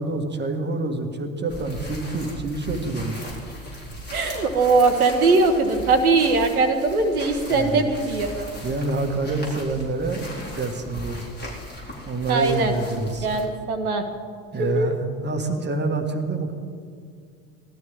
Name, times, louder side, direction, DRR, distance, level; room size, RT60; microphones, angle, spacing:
voice 1, 0.0-3.3 7.5-7.9 8.6-10.3 10.5-11.2 12.0-13.3 14.5-16.5, right 3 dB, 25° right, 5 dB, 1.8 m, -27 dB
sound 1, 1.5-13.5, left 1 dB, 25° left, 4.4 m, -38 dB
voice 2, 4.1-8.5 12.3-12.8 13.2-14.0 14.6-15.0, right 3 dB, 80° right, 6 dB, 1.1 m, -20 dB
19.0 x 13.0 x 3.6 m, 2.2 s
figure-of-eight pair, 70°, 43 cm